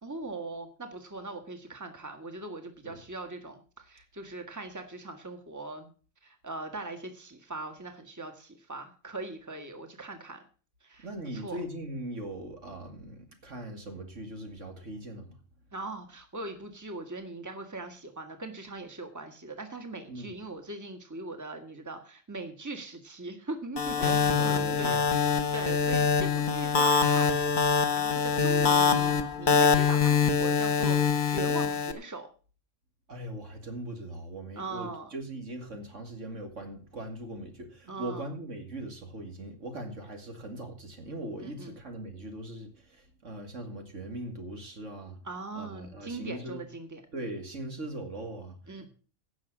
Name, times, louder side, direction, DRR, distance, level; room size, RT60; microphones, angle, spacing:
voice 1, 0.0-5.9 6.2-10.4 10.8-11.1 11.3-11.6 15.7-32.3 34.5-35.1 37.9-38.2 41.4-41.8 45.2-47.0 48.7-48.9, right 2 dB, 15° right, 5 dB, 1.7 m, -40 dB
voice 2, 11.0-15.3 20.1-20.3 24.0-25.1 33.1-45.2 45.5-46.6 47.1-48.9, right 1 dB, 75° right, 4 dB, 2.7 m, -40 dB
sound 1, 23.8-31.9, left 6 dB, 40° left, 1.2 m, -24 dB
16.5 x 6.3 x 6.1 m, 0.38 s
omnidirectional pair, 1.3 m